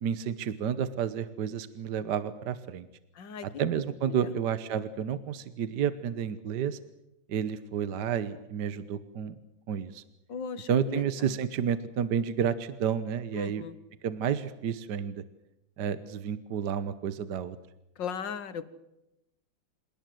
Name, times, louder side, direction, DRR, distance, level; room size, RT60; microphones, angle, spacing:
voice 1, 0.0-2.9 3.4-6.8 7.3-9.3 9.7-10.0 10.7-13.6 14.0-15.2 15.8-17.6, right 8 dB, 65° right, 14 dB, 1.6 m, -30 dB
voice 2, 3.2-3.5 3.7-4.4 10.3-11.4 13.3-13.8 18.0-18.7, left 6 dB, 70° left, 14 dB, 2.1 m, -38 dB
27.5 x 18.5 x 7.7 m, 0.90 s
omnidirectional pair, 2.1 m